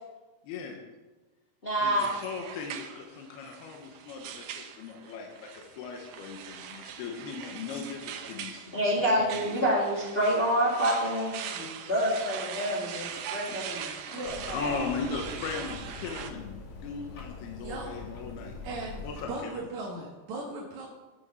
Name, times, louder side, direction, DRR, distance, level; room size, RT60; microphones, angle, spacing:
voice 1, 0.4-0.8 1.8-9.3 14.1-18.6 19.0-19.5, left 5 dB, 80° left, 2 dB, 3.1 m, -38 dB
voice 2, 1.6-2.1 8.7-13.9 14.6-14.8, equal, 25° left, -5 dB, 1.2 m, -27 dB
sound 1, 2.0-16.3, right 8 dB, 75° right, 1.9 m, -41 dB
sound 2, 14.2-19.3, left 3 dB, 55° left, 1.8 m, -43 dB
voice 3, 17.6-17.9 18.6-19.0 19.3-20.9, right 2 dB, 55° right, -3 dB, 2.6 m, -37 dB
12.0 x 7.1 x 6.1 m, 1.2 s
omnidirectional pair, 4.6 m